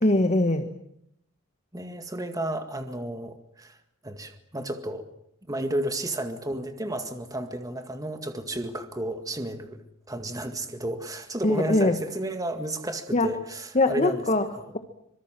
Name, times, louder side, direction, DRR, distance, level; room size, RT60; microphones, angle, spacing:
voice 1, 0.0-0.7 11.4-12.0 13.1-13.3 13.7-14.4, left 2 dB, 35° left, 8 dB, 1.4 m, -22 dB
voice 2, 1.7-3.8 4.0-5.1 5.5-14.2 14.6-14.7, right 1 dB, 15° right, 7 dB, 2.0 m, -32 dB
25.5 x 23.0 x 7.5 m, 0.76 s
head